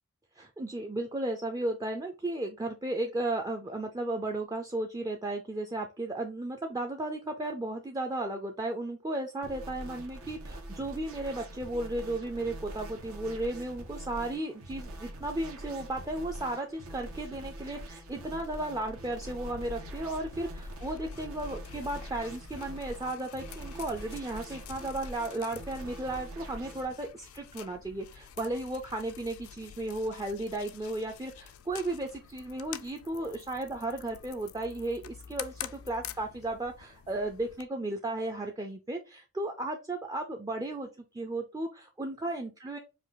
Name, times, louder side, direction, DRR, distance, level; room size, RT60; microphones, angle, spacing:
voice 1, 0.4-40.9 41.1-42.8, right 2 dB, 15° right, 2 dB, 0.4 m, -34 dB
sound 1, 9.4-26.9, right 1 dB, 90° right, 1.1 m, -44 dB
sound 2, 19.4-37.6, left 9 dB, 80° left, 0.4 m, -48 dB
5.1 x 2.3 x 3.9 m, 0.29 s
head